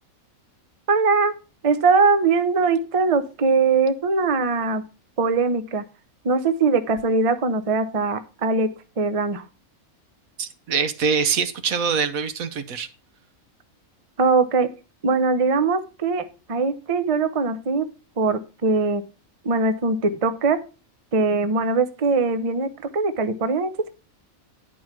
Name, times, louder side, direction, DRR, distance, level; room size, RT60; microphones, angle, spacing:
voice 1, 0.9-1.3 1.6-4.8 5.2-5.8 6.2-8.7 9.0-9.4 14.2-14.7 15.0-17.9 18.2-19.0 19.4-20.6 21.1-23.9, right 4 dB, 35° right, 0.6 m, -21 dB
voice 2, 10.4-12.9, right 6 dB, 75° right, 1.3 m, -24 dB
10.0 x 4.7 x 5.9 m
omnidirectional pair, 1.5 m